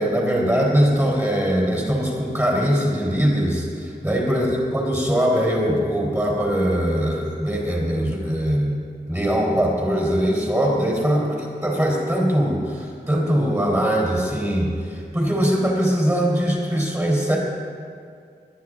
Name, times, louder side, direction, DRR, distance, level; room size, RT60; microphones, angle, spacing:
voice 1, 0.0-8.8 9.1-17.4, equal, 15° right, -3 dB, 3.7 m, -21 dB
23.5 x 10.0 x 3.8 m, 2.2 s
wide cardioid pair, 65°, 18 cm